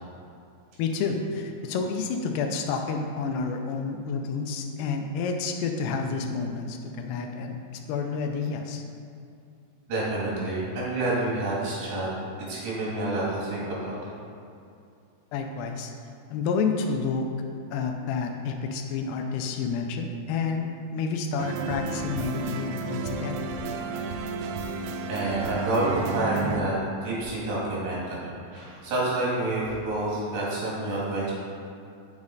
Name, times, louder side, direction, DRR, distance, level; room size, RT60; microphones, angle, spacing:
voice 1, 0.8-7.6 7.9-8.8 15.3-15.9 16.3-17.3 17.7-23.4, left 5 dB, 85° left, 4 dB, 2.7 m, -29 dB
voice 2, 9.9-12.1 12.5-14.1 25.1-31.3, right 2 dB, 65° right, -7 dB, 3.7 m, -28 dB
sound 1, 21.4-26.6, right 4 dB, 85° right, 2.7 m, -32 dB
7.2 x 6.3 x 4.0 m, 2.5 s
omnidirectional pair, 4.7 m